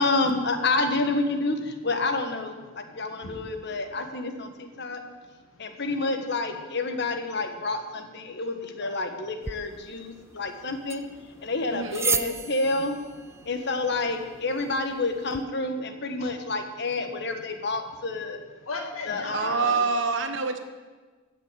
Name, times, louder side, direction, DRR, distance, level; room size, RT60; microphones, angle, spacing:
voice 1, 0.0-5.0 5.6-11.1 11.4-13.0 13.4-18.4 19.1-19.8, left 3 dB, 55° left, 6 dB, 1.4 m, -29 dB
voice 2, 2.7-3.8 4.2-6.0 8.3-8.5 8.8-9.1 9.8-10.8 11.1-11.8 13.4-13.9 16.2-16.4 17.2-17.3 18.5-19.9, left 3 dB, 80° left, 2 dB, 2.3 m, -43 dB
sound 1, 9.4-15.4, right 6 dB, 15° right, 0.3 m, -35 dB
voice 3, 11.7-12.0 19.3-20.6, right 4 dB, 60° right, 7 dB, 1.2 m, -26 dB
14.5 x 6.5 x 9.0 m, 1.3 s
head